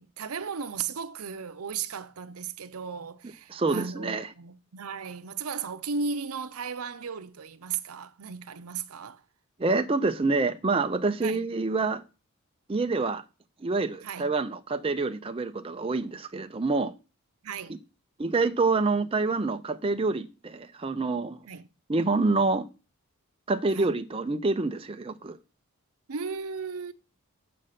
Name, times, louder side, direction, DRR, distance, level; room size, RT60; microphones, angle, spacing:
voice 1, 0.0-9.2 11.2-11.4 14.0-14.3 17.4-17.8 21.4-21.7 23.7-24.0 26.1-26.9, right 5 dB, 80° right, 0.7 m, -35 dB
voice 2, 3.5-4.3 9.6-12.0 12.7-13.2 13.6-16.9 18.2-21.4 21.9-22.7 23.5-25.4, right 3 dB, 25° right, 0.5 m, -27 dB
7.6 x 6.5 x 5.7 m
head